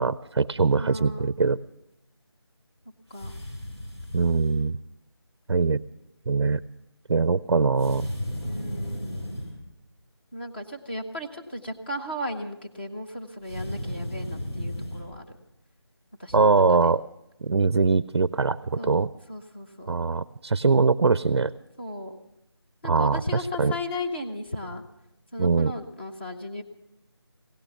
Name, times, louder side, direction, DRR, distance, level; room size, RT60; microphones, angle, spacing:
voice 1, 0.0-1.6 4.1-4.8 5.5-5.8 6.3-6.6 7.1-8.1 16.3-17.0 17.4-19.1 19.9-21.5 22.8-23.7 25.4-25.7, right 4 dB, 70° right, 17 dB, 0.4 m, -22 dB
voice 2, 0.7-1.3 3.1-3.4 8.4-9.2 10.3-15.2 16.2-16.8 18.8-19.0 19.3-19.9 21.8-22.2 22.8-24.8 25.3-26.6, left 1 dB, 20° left, 2 dB, 0.9 m, -35 dB
sound 1, 3.1-4.6 7.8-9.6 13.4-15.1, equal, 90° left, 6.2 m, -34 dB
16.5 x 9.8 x 6.8 m, 0.87 s
figure-of-eight pair, 175°, 14 cm